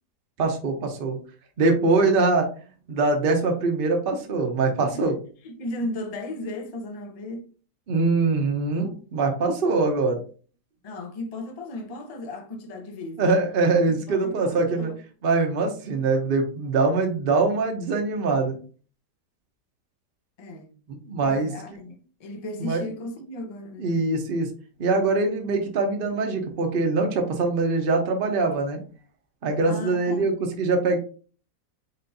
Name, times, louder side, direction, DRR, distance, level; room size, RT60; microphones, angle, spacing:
voice 1, 0.4-1.2 1.6-2.5 2.9-5.1 7.9-10.2 13.2-14.9 15.2-18.5 20.9-21.5 22.6-22.8 23.8-24.5 24.8-28.8 29.4-30.3 30.6-31.0, right 3 dB, 45° right, 0.8 m, -23 dB
voice 2, 5.4-7.4 10.8-13.3 14.1-15.0 20.4-20.7 21.2-21.9 22.2-23.9 29.7-30.3, left 2 dB, 55° left, 0.4 m, -35 dB
4.3 x 4.2 x 2.6 m
omnidirectional pair, 1.8 m